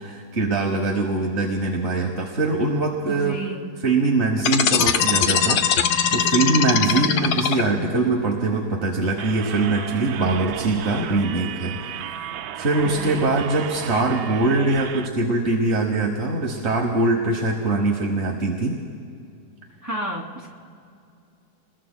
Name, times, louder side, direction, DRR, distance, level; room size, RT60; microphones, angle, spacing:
voice 1, 0.0-3.4 3.8-18.8, right 2 dB, 40° right, 0 dB, 1.3 m, -23 dB
voice 2, 3.1-3.6 6.8-7.1 12.8-13.3 19.8-20.5, right 2 dB, 10° right, -4 dB, 2.5 m, -31 dB
sound 1, 4.4-8.0, left 7 dB, 65° left, 1.2 m, -20 dB
sound 2, 9.2-15.1, right 10 dB, 85° right, 1.4 m, -34 dB
29.5 x 21.5 x 2.2 m, 2.4 s
omnidirectional pair, 2.1 m